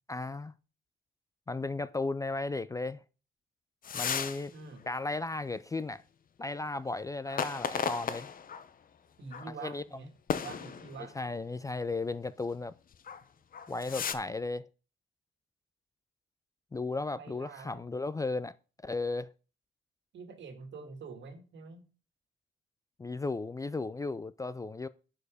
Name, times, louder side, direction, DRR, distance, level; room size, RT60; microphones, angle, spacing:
voice 1, 0.1-0.5 1.5-3.0 3.9-4.5 4.9-6.0 6.4-8.3 9.6-9.8 11.2-12.7 13.7-14.6 16.7-18.5 18.8-19.3 23.0-24.9, left 3 dB, 15° left, 0.3 m, -35 dB
sound 1, 3.8-4.4 4.8-4.9 7.3-8.7 9.3-9.5 10.3-11.1 12.9-13.2 13.5-14.1, left 7 dB, 45° left, 0.8 m, -35 dB
voice 2, 4.5-4.8 9.2-11.1 17.1-17.9 20.1-21.8, right 4 dB, 65° right, 1.9 m, -46 dB
9.8 x 4.7 x 5.0 m
cardioid pair, 90°, 20 cm